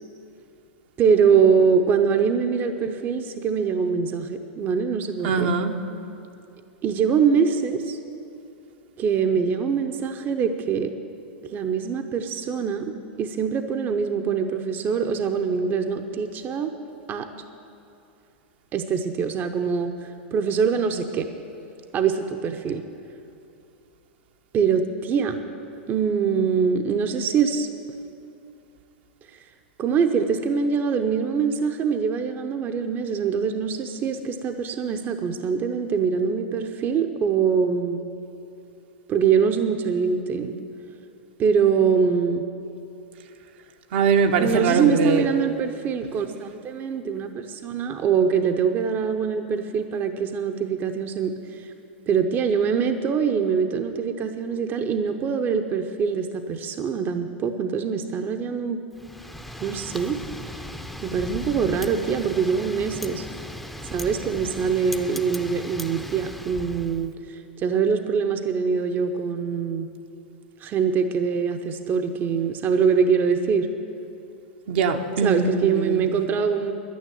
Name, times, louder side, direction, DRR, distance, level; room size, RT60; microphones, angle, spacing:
voice 1, 1.0-5.5 6.8-8.0 9.0-10.9 11.4-16.7 17.1-17.3 18.7-21.3 21.9-22.8 24.5-25.4 25.9-27.7 29.8-38.1 39.1-40.6 41.4-42.4 44.4-51.7 52.1-58.8 59.6-60.2 61.0-63.3 63.8-69.9 70.6-73.7 75.2-76.7, right 6 dB, 35° right, 6 dB, 0.8 m, -23 dB
voice 2, 5.2-5.8 43.9-45.3 74.7-76.1, right 5 dB, 60° right, 4 dB, 1.0 m, -22 dB
Wind, 58.9-67.1, left 1 dB, ahead, 0.7 m, -37 dB
11.0 x 9.4 x 9.3 m, 2.7 s
hypercardioid pair, 100°, 6 cm